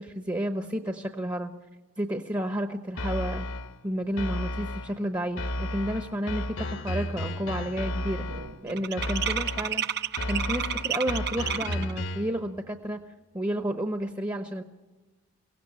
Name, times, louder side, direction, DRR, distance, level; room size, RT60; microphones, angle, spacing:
voice 1, 0.0-1.5 2.0-3.5 3.8-8.3 8.6-13.0 13.3-14.6, equal, 20° right, 6 dB, 1.0 m, -31 dB
sound 1, 3.0-3.8 4.2-5.0 5.4-8.6 9.0-9.8 10.2-12.4, left 1 dB, 65° left, 1.2 m, -33 dB
sound 2, 6.8-7.1 7.3-12.0, right 8 dB, 50° right, 0.8 m, -32 dB
23.5 x 17.5 x 9.7 m, 1.2 s
head